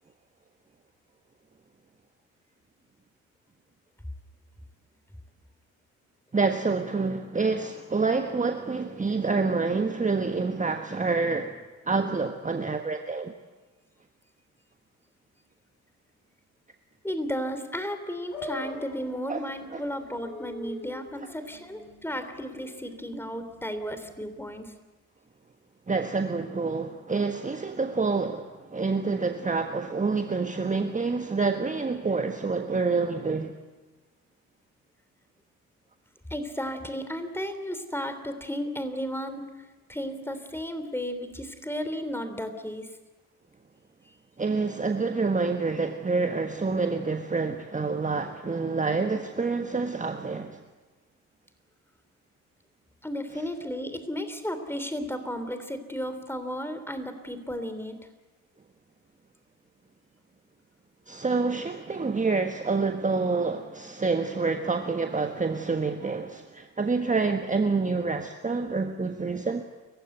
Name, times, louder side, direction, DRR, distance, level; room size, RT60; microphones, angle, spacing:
voice 1, 6.3-11.6 11.9-13.3 19.3-19.4 19.7-19.8 25.9-33.5 44.4-50.6 61.1-69.6, right 4 dB, 20° right, 6 dB, 1.4 m, -27 dB
voice 2, 17.0-24.7 36.3-39.6 39.9-42.9 44.0-44.2 53.0-58.0, equal, 5° left, 9 dB, 3.3 m, -34 dB
sound 1, 18.3-24.8, left 2 dB, 85° left, 2.7 m, -43 dB
29.5 x 15.5 x 8.0 m, 1.2 s
figure-of-eight pair, 45°, 41 cm